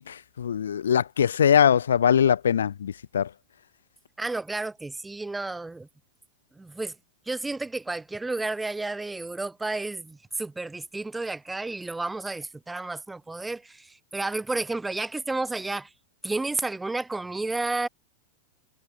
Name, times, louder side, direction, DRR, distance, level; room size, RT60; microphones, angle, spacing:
voice 1, 0.0-3.3, left 8 dB, 65° left, 0.5 m, -22 dB
voice 2, 4.2-5.9 6.5-6.9 7.3-15.9 16.2-17.9, right 2 dB, 10° right, 1.5 m, -31 dB
figure-of-eight pair, 90°, 0 cm